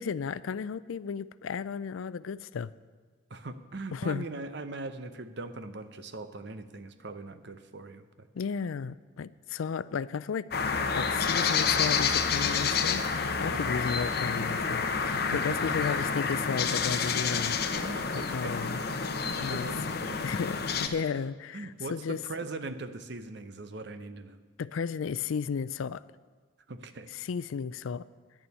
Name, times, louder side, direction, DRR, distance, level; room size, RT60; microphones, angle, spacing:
voice 1, 0.0-2.7 3.9-4.3 8.3-10.5 10.9-13.0 13.4-18.8 19.4-19.7 20.2-22.2 24.6-26.0 27.1-28.1, left 6 dB, 75° left, 18 dB, 0.4 m, -34 dB
voice 2, 3.3-8.3 13.5-13.8 15.2-16.0 17.8-18.7 19.3-20.5 21.5-24.4 26.7-27.1, right 3 dB, 55° right, 11 dB, 0.7 m, -41 dB
sound 1, 10.5-20.9, left 5 dB, 50° left, 0.8 m, -29 dB
10.5 x 7.0 x 9.4 m, 1.4 s
head